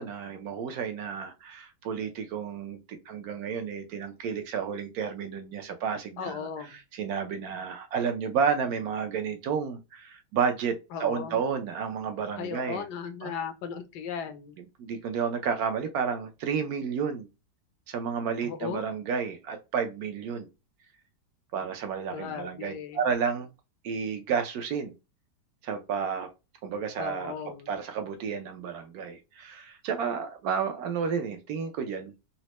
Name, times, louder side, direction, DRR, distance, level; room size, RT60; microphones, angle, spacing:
voice 1, 0.0-6.4 6.9-10.7 11.0-12.8 13.2-13.3 14.8-17.3 17.9-20.5 21.5-23.5 23.8-24.9 25.6-26.3 26.6-27.3 27.7-32.1, right 6 dB, 70° right, 1.0 m, -31 dB
voice 2, 6.2-6.8 10.9-11.4 12.3-14.5 18.4-18.9 22.1-23.0 27.0-27.7, left 7 dB, 80° left, 1.2 m, -36 dB
4.1 x 2.1 x 2.9 m
omnidirectional pair, 1.8 m